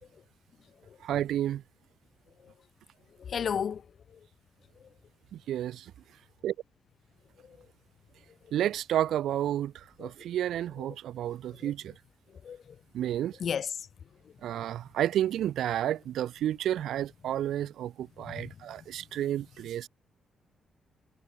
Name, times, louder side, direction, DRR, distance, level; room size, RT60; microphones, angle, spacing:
voice 1, 1.0-1.6 5.5-5.9 6.4-6.5 8.5-9.7 10.0-11.9 12.9-13.3 14.4-19.9, right 11 dB, 85° right, 2.3 m, -31 dB
voice 2, 3.2-3.8 7.5-7.6 10.0-10.1 11.5-11.7 12.4-12.8 13.4-13.7 18.3-18.5, left 7 dB, 55° left, 2.9 m, -33 dB
cardioid pair, 100°, 0 cm